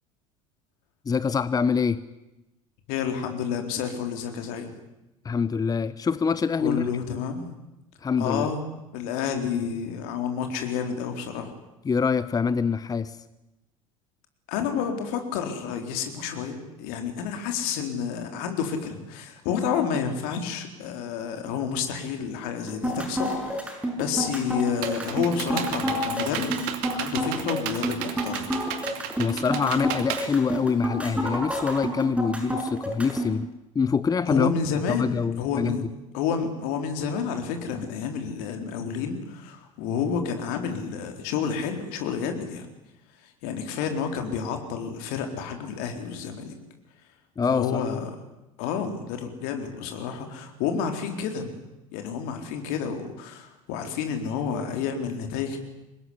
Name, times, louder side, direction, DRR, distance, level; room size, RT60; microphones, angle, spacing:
voice 1, 1.1-2.0 5.2-6.8 8.0-8.5 11.8-13.2 29.2-33.5 33.7-34.5 34.9-35.7 47.4-47.8, left 5 dB, 20° left, 16 dB, 1.0 m, -25 dB
voice 2, 2.9-4.7 6.6-7.5 8.2-8.6 8.9-11.5 14.5-26.5 26.9-28.6 34.3-35.9 36.1-42.7 43.2-46.5 47.5-48.1 48.6-51.5 51.9-55.6, left 7 dB, 60° left, 5 dB, 4.1 m, -30 dB
sound 1, 22.7-33.3, equal, 5° right, 7.3 m, -29 dB
Computer keyboard, 24.3-31.1, right 11 dB, 60° right, 2.6 m, -34 dB
25.5 x 20.5 x 9.8 m, 0.97 s
figure-of-eight pair, 70°, 17 cm